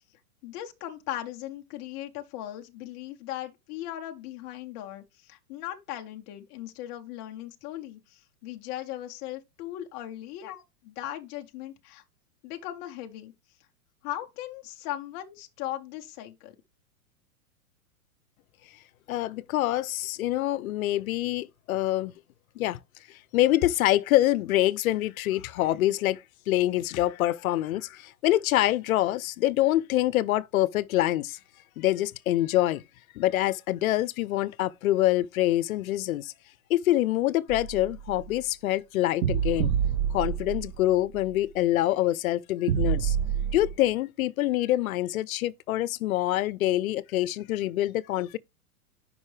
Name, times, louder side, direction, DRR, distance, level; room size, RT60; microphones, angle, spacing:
voice 1, 0.4-12.0 12.4-13.3 14.0-16.6, left 13 dB, 20° left, 0.4 m, -38 dB
voice 2, 19.1-22.1 22.6-22.8 23.3-26.2 26.5-31.4 31.8-32.8 33.2-36.3 36.7-39.7 40.1-43.2 43.5-48.4, left 15 dB, 70° left, 0.6 m, -25 dB
sound 1, 37.5-38.3 39.2-40.9 41.2-41.3 42.7-43.8, right 9 dB, 55° right, 0.7 m, -27 dB
9.4 x 5.3 x 3.2 m
hypercardioid pair, 145°, 45 cm